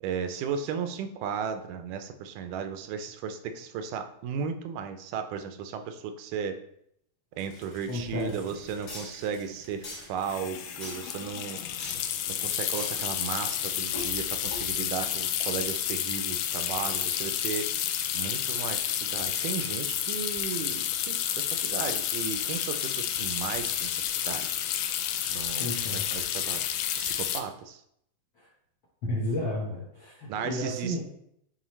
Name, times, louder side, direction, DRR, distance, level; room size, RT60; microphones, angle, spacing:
voice 1, 0.0-6.6 7.4-11.6 12.3-17.7 18.1-24.6 25.3-26.7 27.0-27.8 30.3-31.0, right 7 dB, 90° right, 8 dB, 2.2 m, -35 dB
sound 1, 7.4-15.0, left 1 dB, 40° left, 1.7 m, -44 dB
voice 2, 7.9-8.3 25.6-26.1 28.4-28.5 29.0-31.0, left 1 dB, 60° left, -6 dB, 1.3 m, -32 dB
sound 2, 8.3-8.4 8.6-8.9 10.2-27.4, left 10 dB, 85° left, 2.1 m, -30 dB
8.8 x 4.0 x 3.1 m, 0.73 s
omnidirectional pair, 3.6 m